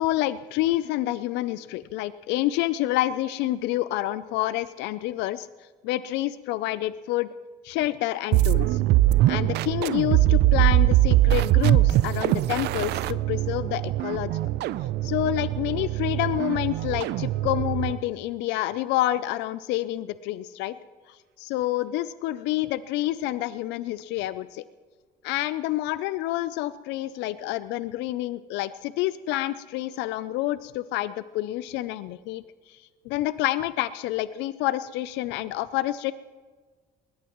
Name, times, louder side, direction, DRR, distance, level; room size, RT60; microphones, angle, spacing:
voice 1, 0.0-5.5 5.8-7.3 7.6-8.8 9.3-14.3 15.0-20.8 21.1-24.6 25.2-36.1, left 15 dB, 85° left, 15 dB, 0.4 m, -28 dB
sound 1, 8.3-18.0, right 15 dB, 75° right, 0.4 m, -22 dB
21.0 x 18.0 x 3.0 m, 1.5 s
cardioid pair, 90°, 18 cm